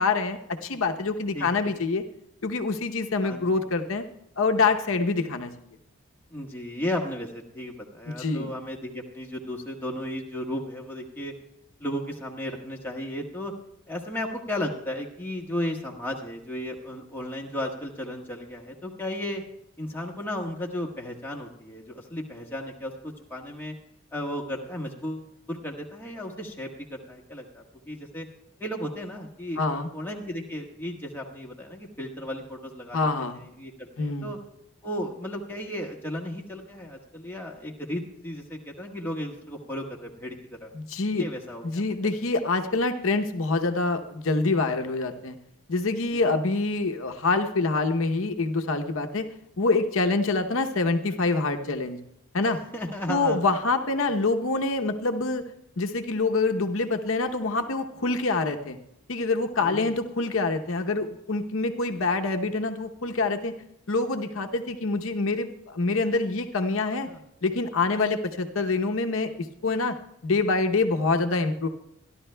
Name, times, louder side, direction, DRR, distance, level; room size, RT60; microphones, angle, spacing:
voice 1, 0.0-2.0 2.4-4.0 4.4-5.5 8.1-8.5 29.6-29.9 32.9-33.4 34.0-34.3 40.7-41.2 41.6-45.4 45.7-49.2 49.6-52.0 52.3-52.6 53.1-55.4 55.8-58.8 59.1-63.5 63.9-67.1 67.4-70.0 70.2-71.7, left 3 dB, 65° left, 6 dB, 0.8 m, -26 dB
voice 2, 1.3-1.8 3.2-3.4 6.3-11.3 11.8-13.5 13.9-19.4 19.8-23.7 24.1-28.3 28.6-34.4 34.8-40.3 40.6-40.7 41.1-41.8 52.7-53.4 59.6-60.0 67.1-67.2, left 1 dB, 10° left, -1 dB, 1.3 m, -34 dB
26.0 x 11.5 x 2.2 m, 0.78 s
head